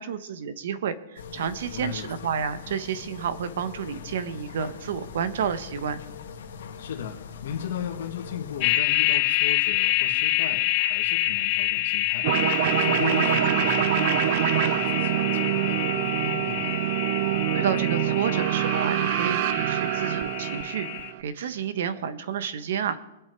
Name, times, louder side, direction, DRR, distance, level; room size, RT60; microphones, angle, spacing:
voice 1, 0.0-6.0 17.5-20.9 21.2-23.0, right 7 dB, 65° right, 13 dB, 1.2 m, -30 dB
sound 1, 1.2-8.7, left 6 dB, 85° left, 2.1 m, -42 dB
voice 2, 1.7-2.1 6.8-12.3 12.6-16.7, left 8 dB, 65° left, -1 dB, 1.9 m, -37 dB
sound 2, 8.6-21.1, left 17 dB, 35° left, 0.8 m, -27 dB
sound 3, 12.2-21.2, right 13 dB, 45° right, 0.6 m, -25 dB
23.0 x 8.1 x 4.7 m, 0.94 s
hypercardioid pair, 165°, 0 cm